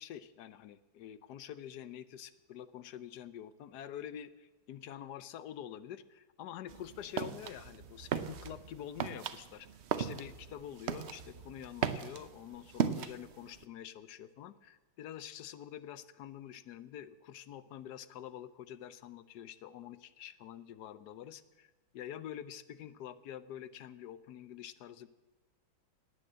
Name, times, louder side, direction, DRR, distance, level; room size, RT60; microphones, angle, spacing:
voice 1, 0.0-9.7 10.0-25.1, left 10 dB, 65° left, 15 dB, 1.1 m, -47 dB
sound 1, 6.7-13.6, right 8 dB, 85° right, 0.6 m, -38 dB
18.0 x 9.6 x 7.5 m, 1.3 s
omnidirectional pair, 2.2 m